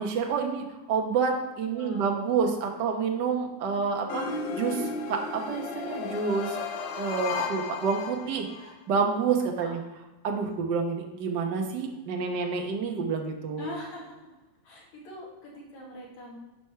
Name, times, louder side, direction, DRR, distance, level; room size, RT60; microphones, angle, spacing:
voice 1, 0.0-4.2 4.5-6.6 6.9-9.8 10.2-13.7, right 5 dB, 80° right, 2 dB, 0.9 m, -28 dB
voice 2, 1.7-2.2 9.6-9.7 13.6-14.3 14.6-16.4, equal, 70° left, -4 dB, 3.5 m, -42 dB
sound 1, 4.1-8.7, left 5 dB, 85° left, 1.1 m, -34 dB
10.0 x 4.8 x 5.7 m, 1.1 s
omnidirectional pair, 3.5 m